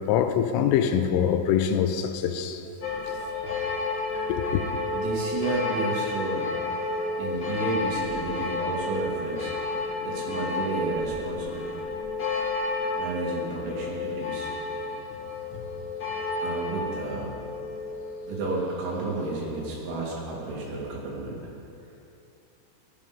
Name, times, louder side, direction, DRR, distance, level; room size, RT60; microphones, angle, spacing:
voice 1, 0.0-2.6 4.3-4.6, left 8 dB, 90° left, 3.3 m, -24 dB
sound 1, 2.8-19.5, left 3 dB, 35° left, 2.2 m, -31 dB
voice 2, 4.9-6.5 7.2-9.5 10.0-11.8 12.9-14.5 16.4-17.3 18.3-21.4, right 3 dB, 70° right, 5.1 m, -31 dB
17.5 x 14.0 x 5.2 m
omnidirectional pair, 5.8 m